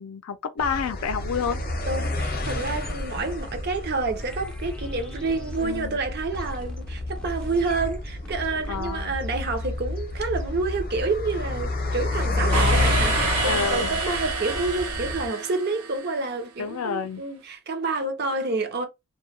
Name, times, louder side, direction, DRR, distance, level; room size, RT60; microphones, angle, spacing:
voice 1, 0.0-1.6 5.6-6.0 8.7-9.1 13.4-14.0 16.6-17.2, left 6 dB, 75° left, 0.4 m, -29 dB
sound 1, 0.6-15.3, left 2 dB, 45° left, 0.7 m, -29 dB
voice 2, 1.9-18.9, right 3 dB, 45° right, 0.6 m, -28 dB
sound 2, 4.2-6.0 6.3-8.9, left 1 dB, 5° left, 0.4 m, -45 dB
sound 3, 12.5-16.3, right 4 dB, 80° right, 0.8 m, -28 dB
2.2 x 2.1 x 3.2 m
head